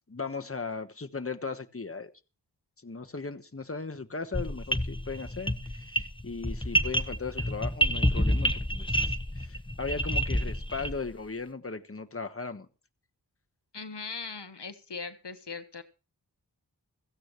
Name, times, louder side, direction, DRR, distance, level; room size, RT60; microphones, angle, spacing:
voice 1, 0.1-2.1 2.8-12.7, left 4 dB, 35° left, 1.3 m, -37 dB
sound 1, 4.3-11.1, equal, 10° left, 1.0 m, -28 dB
voice 2, 13.7-15.8, left 4 dB, 80° left, 1.3 m, -39 dB
16.5 x 15.5 x 3.1 m
wide cardioid pair, 45°, 41 cm